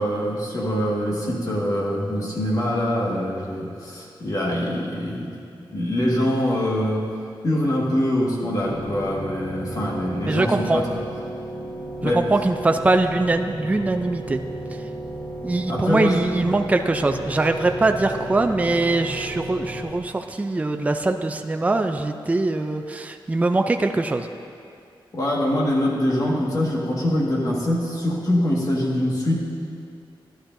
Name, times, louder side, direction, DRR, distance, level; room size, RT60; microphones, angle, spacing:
voice 1, 0.0-5.3 5.7-7.1 7.4-10.9 12.0-12.2 15.7-16.2 25.1-29.4, left 1 dB, 45° left, -3 dB, 1.7 m, -24 dB
sound 1, 8.6-19.8, right 1 dB, 85° left, 2.0 m, -33 dB
voice 2, 10.3-10.8 12.0-14.4 15.4-24.3, right 2 dB, 15° right, 5 dB, 0.4 m, -22 dB
12.5 x 11.5 x 2.6 m, 2.4 s
wide cardioid pair, 130°, 9 cm